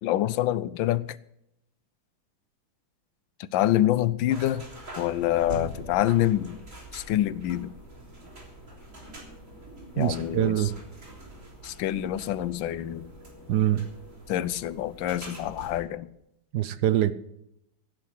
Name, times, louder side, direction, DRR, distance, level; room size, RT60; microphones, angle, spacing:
voice 1, 0.0-1.2 3.5-4.7 5.0-6.6 6.9-7.7 9.9-10.6 11.6-13.1 14.3-16.1, left 13 dB, 85° left, 1.4 m, -26 dB
sound 1, 4.3-15.8, right 1 dB, 40° right, 3.8 m, -44 dB
voice 2, 10.0-10.8 13.5-13.9 16.5-17.1, right 11 dB, 70° right, 1.1 m, -24 dB
16.0 x 9.4 x 6.0 m
omnidirectional pair, 2.0 m